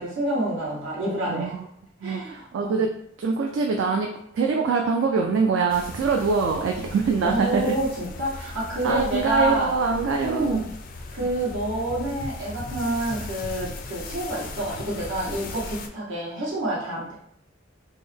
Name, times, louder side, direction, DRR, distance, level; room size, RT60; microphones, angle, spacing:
voice 1, 0.0-1.6 2.0-2.9 7.2-9.7 10.2-10.7 11.1-17.2, right 1 dB, 85° right, -6 dB, 1.4 m, -28 dB
voice 2, 1.3-1.7 2.0-2.9 3.2-4.1 4.3-7.7 8.8-10.6, right 5 dB, 70° right, 2 dB, 0.3 m, -24 dB
sound 1, 5.7-15.9, left 3 dB, 45° left, 0.3 m, -38 dB
3.5 x 2.0 x 3.4 m, 0.70 s
head